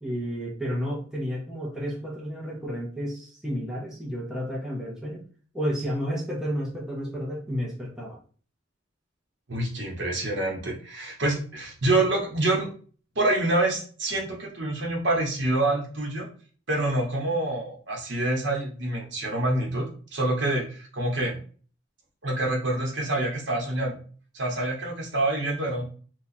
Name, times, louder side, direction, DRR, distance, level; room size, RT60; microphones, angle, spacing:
voice 1, 0.0-5.3 5.5-8.2, equal, 5° right, -4 dB, 0.8 m, -31 dB
voice 2, 9.5-12.7 13.1-16.3 16.7-19.8 20.1-21.3 22.2-24.0 24.3-25.8, right 2 dB, 65° right, -1 dB, 1.1 m, -26 dB
2.8 x 2.4 x 4.1 m, 0.41 s
head